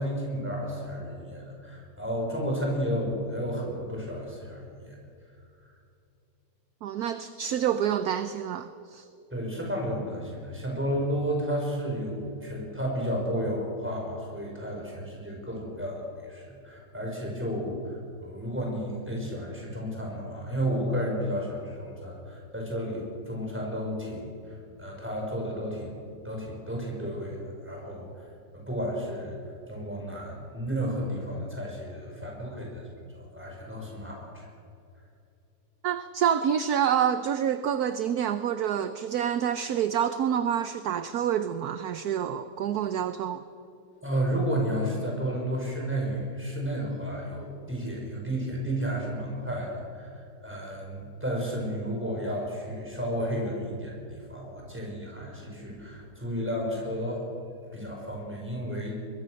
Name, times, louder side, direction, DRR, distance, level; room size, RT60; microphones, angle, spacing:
voice 1, 0.0-5.0 9.3-26.0 26.2-28.3 28.5-29.4 29.7-32.8 33.1-34.5 44.0-50.1 50.4-57.3 57.7-59.0, equal, 5° right, -1 dB, 5.5 m, -32 dB
voice 2, 6.8-9.0 35.8-43.4, right 9 dB, 65° right, 11 dB, 1.1 m, -27 dB
22.5 x 22.0 x 6.5 m, 2.6 s
omnidirectional pair, 2.0 m